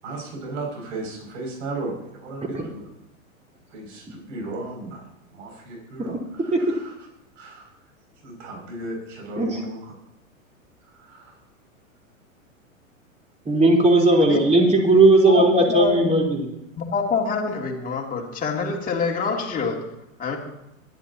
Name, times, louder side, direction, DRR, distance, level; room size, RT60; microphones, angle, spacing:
voice 1, 0.0-2.8 3.7-6.9 7.3-7.8 8.2-9.9 10.9-11.4, right 2 dB, 60° right, 0 dB, 6.8 m, -35 dB
voice 2, 13.5-16.5, right 2 dB, 15° right, -1 dB, 4.0 m, -17 dB
voice 3, 15.7-16.2 16.8-19.8 20.2-20.4, left 5 dB, 20° left, -1 dB, 3.0 m, -26 dB
23.0 x 11.5 x 3.0 m, 0.83 s
hypercardioid pair, 105°, 41 cm